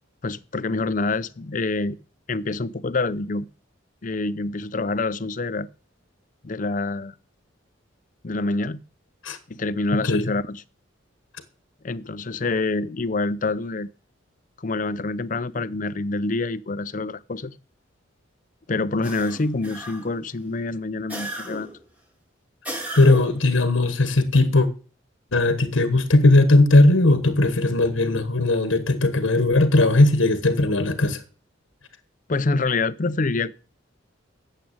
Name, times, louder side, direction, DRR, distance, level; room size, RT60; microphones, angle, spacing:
voice 1, 0.2-2.0 2.3-3.5 4.0-5.7 6.4-7.1 8.2-8.8 9.5-10.6 11.8-13.9 14.6-17.6 18.7-21.7 32.3-33.5, left 3 dB, 40° left, 0.5 m, -26 dB
sound 1, 19.0-20.2 21.1-21.8 22.7-23.5, equal, 5° right, 1.8 m, -34 dB
voice 2, 23.0-24.7 25.3-31.2, left 2 dB, 80° left, 1.4 m, -18 dB
9.3 x 7.6 x 8.7 m
head